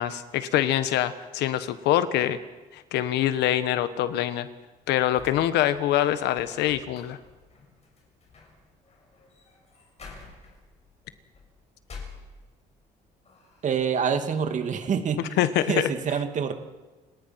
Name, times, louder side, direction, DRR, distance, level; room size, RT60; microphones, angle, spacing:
voice 1, 0.0-2.4 2.7-4.5 4.9-7.2 15.4-15.9, left 12 dB, 85° left, 12 dB, 1.4 m, -24 dB
sound 1, 5.2-12.8 13.2-14.0, left 4 dB, 40° left, 7.1 m, -49 dB
voice 2, 13.6-15.2 15.7-16.5, right 7 dB, 45° right, 7 dB, 2.2 m, -26 dB
30.0 x 18.5 x 5.9 m, 1.2 s
cardioid pair, 110°, 17 cm